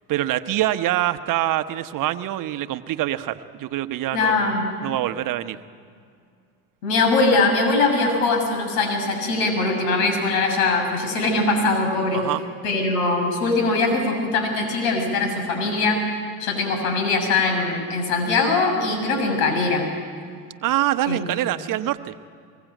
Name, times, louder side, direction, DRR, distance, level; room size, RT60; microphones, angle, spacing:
voice 1, 0.1-4.5 4.8-5.6 12.1-12.4 20.6-22.1, right 14 dB, 50° right, 10 dB, 1.1 m, -25 dB
voice 2, 4.1-4.7 6.8-12.2 12.6-16.0 16.4-19.9 21.1-21.3, left 3 dB, 75° left, 3 dB, 7.0 m, -21 dB
23.5 x 22.0 x 9.3 m, 2.2 s
supercardioid pair, 90°, 41 cm